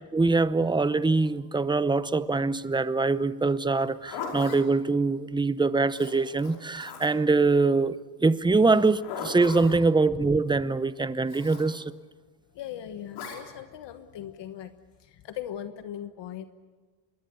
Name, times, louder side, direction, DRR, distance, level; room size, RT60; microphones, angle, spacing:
voice 1, 0.1-11.9, right 3 dB, 10° right, 0.7 m, -24 dB
Zipper (clothing), 3.8-4.6 5.9-7.3 8.7-9.8 11.3-11.7 13.1-13.4, left 5 dB, 85° left, 5.5 m, -38 dB
voice 2, 12.5-14.7 15.0-16.4, left 10 dB, 65° left, 1.3 m, -39 dB
26.0 x 21.5 x 7.0 m
cardioid pair, 105°, 46 cm